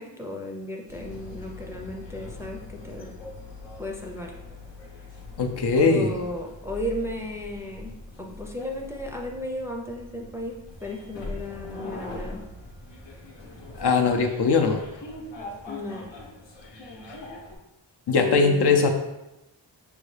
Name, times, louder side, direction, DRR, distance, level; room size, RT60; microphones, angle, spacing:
voice 1, 0.0-3.1 3.8-4.4 5.7-12.4 15.7-16.1 18.1-18.8, left 1 dB, 5° right, 0 dB, 0.4 m, -34 dB
sound 1, 0.9-17.6, left 2 dB, 90° left, 0.8 m, -42 dB
voice 2, 5.4-6.1 13.7-14.8 18.1-18.9, left 4 dB, 65° left, 4 dB, 0.6 m, -20 dB
5.5 x 2.3 x 3.2 m, 0.95 s
wide cardioid pair, 100°, 43 cm